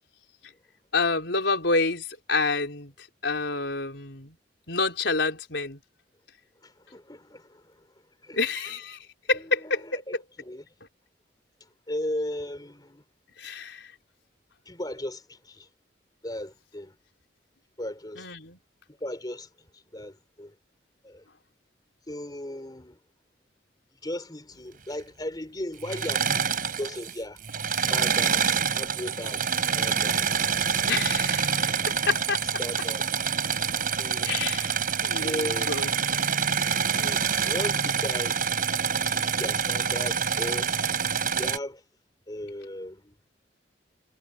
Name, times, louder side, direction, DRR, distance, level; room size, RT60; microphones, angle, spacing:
voice 1, 0.9-2.9 3.2-4.3 4.7-5.8 8.3-9.0 9.3-10.0 13.4-13.9 18.2-18.6 30.9-31.7 32.1-32.4 34.2-34.8 35.0-35.9, left 3 dB, 80° left, 4.1 m, -28 dB
voice 2, 6.6-7.9 8.2-8.7 9.3-10.7 11.9-13.0 14.7-15.7 16.2-17.0 17.8-18.3 19.0-20.6 21.0-21.3 22.1-23.0 24.0-27.4 27.9-28.4 28.7-30.3 30.8-31.0 32.0-32.1 32.6-33.0 34.0-34.3 35.2-35.9 37.0-38.4 38.9-40.7 41.3-41.8 42.3-43.1, left 1 dB, 25° left, 3.7 m, -37 dB
Engine / Mechanisms, 25.8-27.1 27.4-41.6, right 6 dB, 50° right, 5.0 m, -26 dB
head